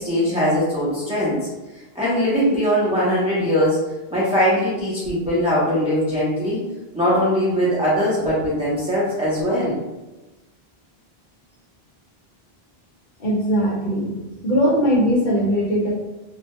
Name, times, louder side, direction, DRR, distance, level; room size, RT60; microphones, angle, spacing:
voice 1, 0.0-1.4 1.9-3.8 4.1-6.6 6.9-9.8, equal, 10° right, -9 dB, 0.5 m, -20 dB
voice 2, 13.2-14.1 14.4-15.9, equal, 55° left, -4 dB, 0.7 m, -20 dB
2.2 x 2.1 x 2.8 m, 1.0 s
omnidirectional pair, 1.0 m